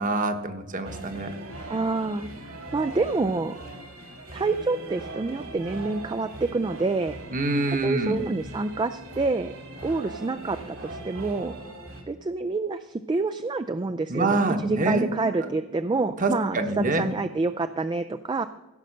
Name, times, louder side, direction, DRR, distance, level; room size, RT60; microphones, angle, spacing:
voice 1, 0.0-1.3 7.3-8.2 14.1-15.1 16.2-17.1, right 2 dB, 40° right, 7 dB, 1.1 m, -25 dB
sound 1, 0.8-12.0, right 2 dB, 70° right, 2.6 m, -40 dB
voice 2, 1.7-3.6 4.3-7.2 7.8-9.5 9.8-11.6 12.1-18.5, right 3 dB, 20° right, 10 dB, 0.3 m, -27 dB
16.0 x 6.4 x 6.5 m, 1.1 s
head